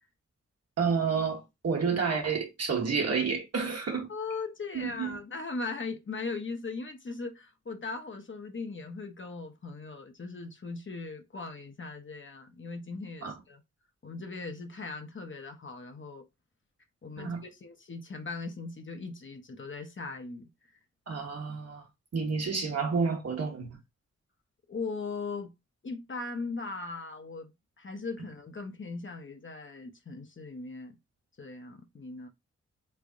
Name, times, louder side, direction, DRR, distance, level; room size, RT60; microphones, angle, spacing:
voice 1, 0.8-4.1 4.7-5.2 13.2-13.4 17.2-17.4 21.1-21.9 22.1-23.8, right 5 dB, 60° right, 1.2 m, -30 dB
voice 2, 4.1-13.6 14.0-16.2 17.0-20.5 24.7-25.5 25.8-27.5 27.8-31.0 31.4-32.3, left 3 dB, 40° left, 0.9 m, -39 dB
3.4 x 3.4 x 2.5 m
cardioid pair, 45°, 29 cm